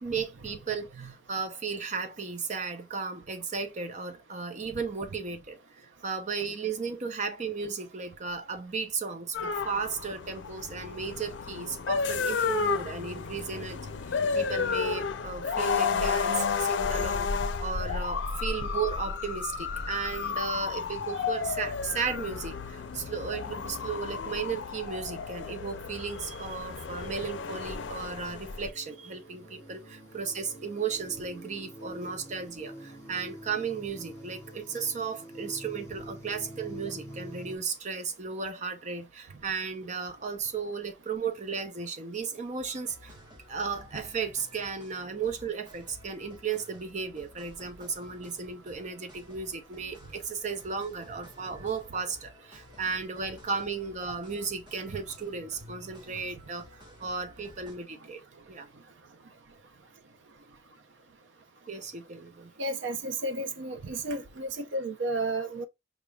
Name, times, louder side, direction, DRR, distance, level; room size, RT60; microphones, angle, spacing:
voice 1, 0.0-13.8 14.1-43.1 43.5-56.7 57.0-58.2 58.5-58.7 61.7-62.5, right 5 dB, 40° right, 0.7 m, -35 dB
sound 1, 9.3-28.7, left 5 dB, 75° left, 0.5 m, -32 dB
sound 2, 26.7-37.6, equal, 15° left, 1.0 m, -47 dB
sound 3, 42.6-57.8, left 1 dB, 25° right, 1.5 m, -53 dB
voice 2, 62.6-65.7, right 2 dB, 85° right, 0.6 m, -32 dB
4.9 x 3.4 x 2.3 m
head